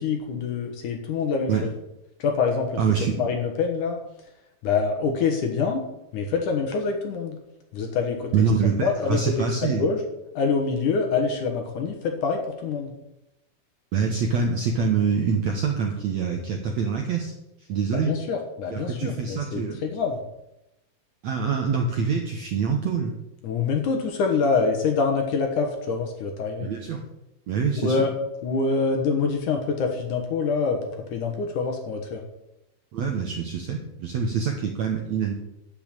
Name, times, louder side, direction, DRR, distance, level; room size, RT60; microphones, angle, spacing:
voice 1, 0.0-1.7 2.2-4.0 4.6-5.8 6.1-7.4 7.7-8.3 8.8-10.0 10.3-12.9 17.9-20.2 23.4-26.7 27.8-28.1 28.4-32.2, left 5 dB, 65° left, 3 dB, 2.4 m, -25 dB
voice 2, 2.8-3.2 8.3-9.8 13.9-17.3 17.7-18.1 18.7-19.8 21.2-23.1 26.6-27.0 27.5-28.0 32.9-35.3, right 5 dB, 70° right, 2 dB, 1.7 m, -25 dB
12.0 x 5.7 x 9.0 m, 0.88 s
omnidirectional pair, 4.7 m